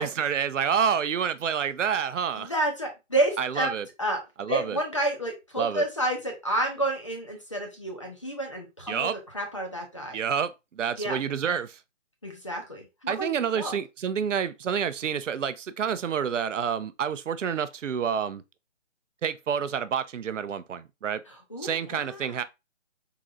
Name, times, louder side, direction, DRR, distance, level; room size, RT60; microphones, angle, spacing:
voice 1, 0.0-2.5 3.4-3.8 4.4-4.8 5.6-5.8 8.9-9.2 10.1-11.8 13.1-18.4 19.2-21.2 21.6-22.4, right 7 dB, 90° right, 0.6 m, -28 dB
voice 2, 2.4-3.7 4.0-4.2 4.5-10.2 11.0-11.2 12.2-13.3 13.5-13.8 21.3-22.4, right 1 dB, 25° left, 0.6 m, -30 dB
3.8 x 2.6 x 2.9 m
hypercardioid pair, 170°, 36 cm